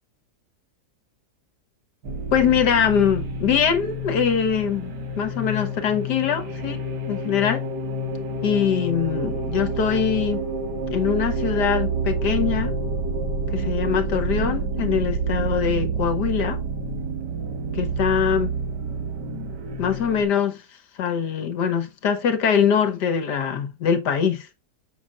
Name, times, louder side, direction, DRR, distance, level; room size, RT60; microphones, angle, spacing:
sound 1, 2.0-20.2, right 3 dB, 90° right, 2.0 m, -28 dB
voice 1, 2.3-6.8 7.1-7.6 8.4-10.4 10.9-12.7 13.5-16.6 17.7-18.5 19.8-20.6 21.0-24.5, left 7 dB, 80° left, 1.7 m, -23 dB
6.8 x 6.0 x 2.3 m
omnidirectional pair, 1.8 m